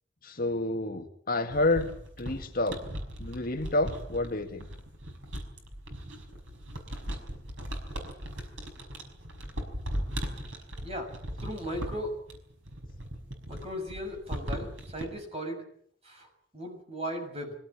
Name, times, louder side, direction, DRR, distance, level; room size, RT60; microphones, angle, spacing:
voice 1, 0.2-1.9 2.2-2.8 3.2-4.6, left 2 dB, 45° left, 5 dB, 1.9 m, -29 dB
sound 1, 1.5-15.1, equal, 75° right, 5.8 m, -38 dB
voice 2, 11.4-12.1 13.5-14.7 14.9-15.6 16.0-16.3 16.5-17.5, equal, 30° right, 3 dB, 6.6 m, -36 dB
24.0 x 17.5 x 8.7 m, 0.64 s
head